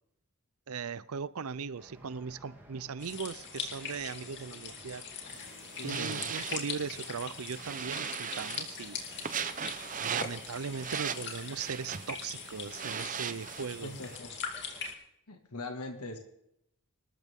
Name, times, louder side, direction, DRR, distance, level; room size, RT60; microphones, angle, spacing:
voice 1, 0.7-5.1 5.8-9.0 10.0-14.0, right 5 dB, 70° right, 0.6 m, -39 dB
sound 1, 1.8-15.0, equal, 10° right, 3.1 m, -57 dB
sound 2, 3.0-14.9, left 6 dB, 55° left, 3.0 m, -42 dB
sound 3, 5.3-14.2, right 7 dB, 35° right, 0.8 m, -39 dB
voice 2, 5.8-6.3 13.8-14.3 15.3-16.2, left 2 dB, 85° left, 2.1 m, -41 dB
25.0 x 13.5 x 3.7 m
head